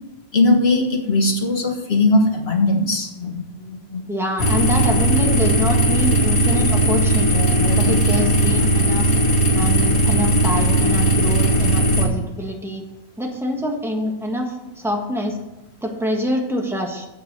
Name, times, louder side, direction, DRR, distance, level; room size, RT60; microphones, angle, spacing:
voice 1, 0.3-4.0 7.3-8.1, left 2 dB, 45° left, 3 dB, 1.6 m, -20 dB
voice 2, 4.1-7.4 7.7-9.1 9.5-12.8 13.2-15.4 15.8-17.1, equal, ahead, 1 dB, 1.5 m, -25 dB
sound 1, 4.4-12.1, right 1 dB, 75° left, 2.1 m, -17 dB
8.1 x 7.5 x 6.7 m, 0.94 s
omnidirectional pair, 1.5 m